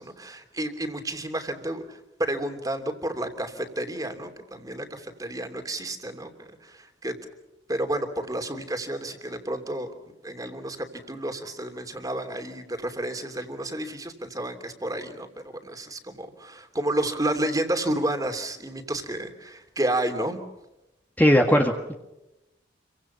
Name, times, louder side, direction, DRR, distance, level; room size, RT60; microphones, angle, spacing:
voice 1, 0.0-7.2 7.7-9.9 10.2-20.4, right 1 dB, 20° right, 6 dB, 3.0 m, -31 dB
voice 2, 21.2-21.9, equal, 10° left, 2 dB, 1.7 m, -19 dB
29.5 x 24.5 x 5.7 m, 0.94 s
head